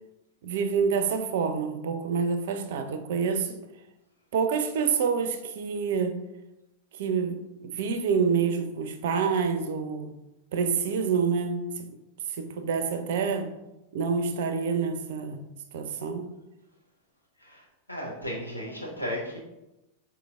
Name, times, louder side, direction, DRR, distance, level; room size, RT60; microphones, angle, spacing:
voice 1, 0.4-3.6 4.3-6.2 7.0-10.1 10.5-11.6 12.3-13.5 13.9-15.4 15.7-16.3, right 6 dB, 55° right, 8 dB, 0.4 m, -27 dB
voice 2, 17.9-19.4, left 1 dB, 85° left, -2 dB, 1.0 m, -34 dB
5.1 x 3.0 x 2.3 m, 0.94 s
figure-of-eight pair, 90°, 0 cm